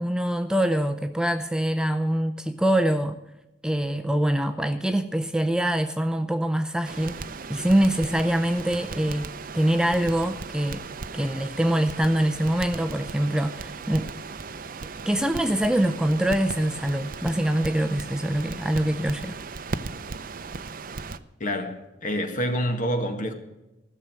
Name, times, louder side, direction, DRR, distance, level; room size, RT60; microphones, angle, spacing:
voice 1, 0.0-3.2 3.6-7.2 7.5-10.8 11.1-14.1 15.1-19.4, right 1 dB, 5° right, 0.5 m, -24 dB
Crackle, 6.8-21.2, right 4 dB, 50° right, 0.6 m, -37 dB
voice 2, 21.4-23.3, equal, 45° left, 1.8 m, -27 dB
15.5 x 6.8 x 9.3 m
head